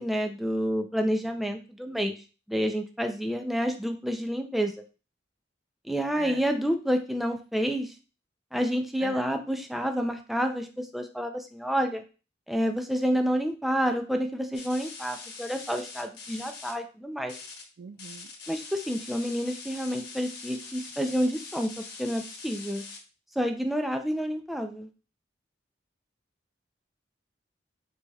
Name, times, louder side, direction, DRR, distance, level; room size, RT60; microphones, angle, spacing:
voice 1, 0.0-2.2 2.5-4.8 5.8-7.9 8.5-12.0 12.5-17.4 18.5-22.8 23.4-24.9, equal, ahead, 4 dB, 0.4 m, -29 dB
sound 1, 14.5-16.7 17.2-17.6 17.9-23.0, left 4 dB, 60° left, 1.0 m, -43 dB
voice 2, 17.8-18.3, right 5 dB, 65° right, 12 dB, 0.4 m, -41 dB
5.0 x 4.1 x 2.3 m, 0.34 s
head